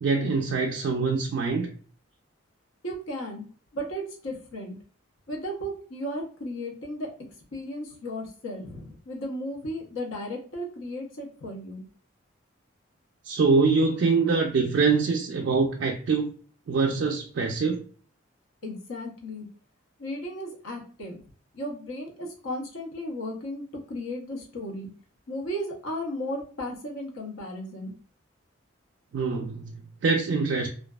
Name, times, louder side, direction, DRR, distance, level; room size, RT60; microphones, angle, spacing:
voice 1, 0.0-1.7 13.2-16.3 16.7-17.9 29.1-30.7, right 4 dB, 65° right, 0.3 m, -24 dB
voice 2, 2.8-3.4 3.7-4.8 5.3-7.1 7.5-11.9 18.6-19.5 20.0-21.2 21.5-24.9 25.3-27.9, equal, 85° left, 0.8 m, -35 dB
2.5 x 2.3 x 2.2 m
head